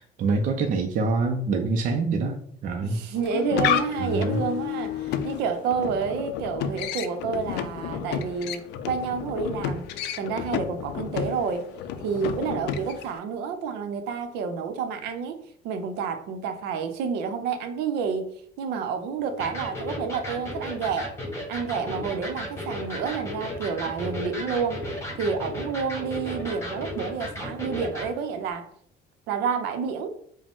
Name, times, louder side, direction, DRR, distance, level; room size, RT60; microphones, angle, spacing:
voice 1, 0.0-3.0 4.0-4.4, right 3 dB, 50° right, 3 dB, 0.5 m, -26 dB
voice 2, 2.8-9.9 10.2-11.7 12.0-18.3 18.6-21.1 21.5-24.8 25.2-28.7 29.3-30.1, right 6 dB, 90° right, 7 dB, 0.6 m, -29 dB
sound 1, 3.2-13.2, left 9 dB, 90° left, 0.4 m, -31 dB
Electric guitar, 19.4-28.1, equal, 15° left, 1.2 m, -34 dB
4.9 x 2.1 x 3.5 m, 0.63 s
cardioid pair, 110°, 17 cm